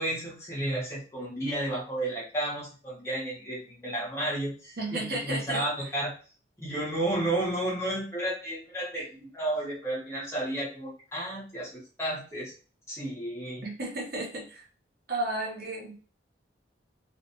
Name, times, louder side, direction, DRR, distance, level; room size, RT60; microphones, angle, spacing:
voice 1, 0.0-6.1 6.6-12.5 12.9-13.6, right 1 dB, 15° left, -6 dB, 1.0 m, -32 dB
voice 2, 4.8-5.6 13.6-14.7 15.1-16.0, right 2 dB, 55° right, 0 dB, 0.8 m, -33 dB
2.6 x 2.4 x 2.7 m, 0.37 s
head